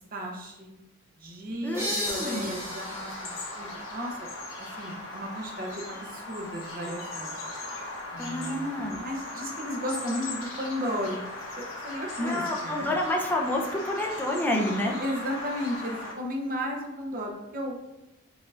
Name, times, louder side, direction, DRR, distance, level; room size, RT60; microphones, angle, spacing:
voice 1, 0.1-0.7 1.2-4.2 4.8-7.3 8.1-11.2 11.8-13.0 15.0-17.8, equal, 45° right, 0 dB, 0.8 m, -34 dB
voice 2, 1.6-2.6 8.2-9.0 12.2-15.0, left 1 dB, 10° left, 0 dB, 0.5 m, -29 dB
sound 1, 1.7-5.2, equal, 15° right, 1.3 m, -36 dB
Bird vocalization bird call bird song, 2.0-16.1, left 2 dB, 70° left, 1.0 m, -38 dB
4.9 x 3.6 x 2.5 m, 0.96 s
head